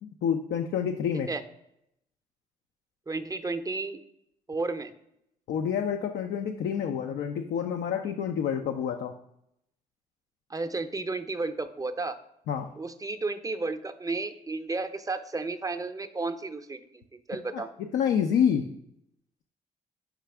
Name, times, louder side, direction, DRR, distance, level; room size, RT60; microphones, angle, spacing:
voice 1, 0.0-1.3 5.5-9.1 12.5-12.7 17.5-18.7, left 8 dB, 65° left, 5 dB, 0.4 m, -28 dB
voice 2, 3.1-4.0 4.5-4.9 10.5-12.2 12.8-17.0 17.3-17.7, right 3 dB, 20° right, 8 dB, 0.6 m, -32 dB
5.9 x 4.7 x 3.4 m, 0.78 s
hypercardioid pair, 45°, 18 cm